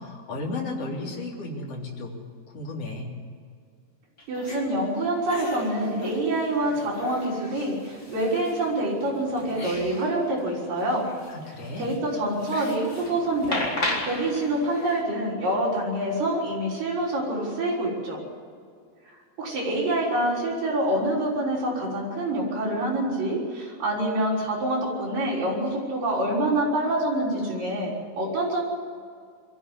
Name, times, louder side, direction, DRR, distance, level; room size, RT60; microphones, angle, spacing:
voice 1, 0.0-2.2 2.5-3.1 11.3-12.0, left 2 dB, 40° left, -1 dB, 4.1 m, -34 dB
sound 1, 4.2-4.6 5.3-8.7 9.1-10.1 10.4-10.5 10.8-15.0, left 1 dB, 20° left, 4.4 m, -35 dB
voice 2, 4.3-11.0 11.8-13.7 14.0-18.2 19.4-28.6, right 1 dB, 55° right, -5 dB, 7.6 m, -26 dB
22.5 x 14.0 x 9.8 m, 2.1 s
omnidirectional pair, 4.6 m